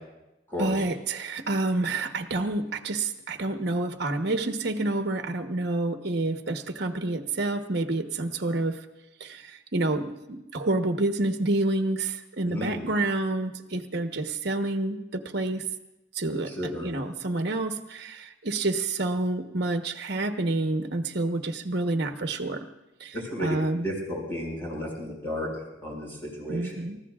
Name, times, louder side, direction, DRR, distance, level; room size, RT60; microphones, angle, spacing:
voice 1, 0.6-8.8 9.2-15.6 16.1-22.7 23.0-23.1 23.4-23.8 26.5-27.0, right 2 dB, 55° right, 5 dB, 1.1 m, -28 dB
voice 2, 12.4-12.9 16.5-16.9 23.1-23.6 23.8-25.5 25.8-26.8, equal, 10° left, -3 dB, 5.9 m, -33 dB
30.0 x 15.0 x 2.5 m, 0.98 s
head